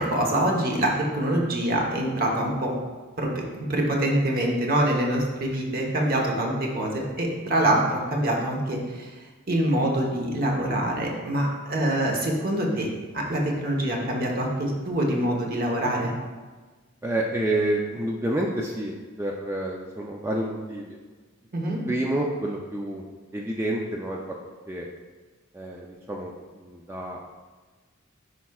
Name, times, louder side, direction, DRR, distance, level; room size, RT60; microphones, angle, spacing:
voice 1, 0.0-2.7 3.2-3.4 3.7-9.1 9.5-12.9 13.1-16.1 21.5-21.8, right 1 dB, 45° right, 0 dB, 1.0 m, -25 dB
voice 2, 17.0-21.0 21.9-23.0 23.3-24.4 24.7-24.9 25.5-26.3 26.6-27.3, right 1 dB, 10° right, -1 dB, 0.4 m, -29 dB
10.0 x 4.7 x 2.3 m, 1.3 s
head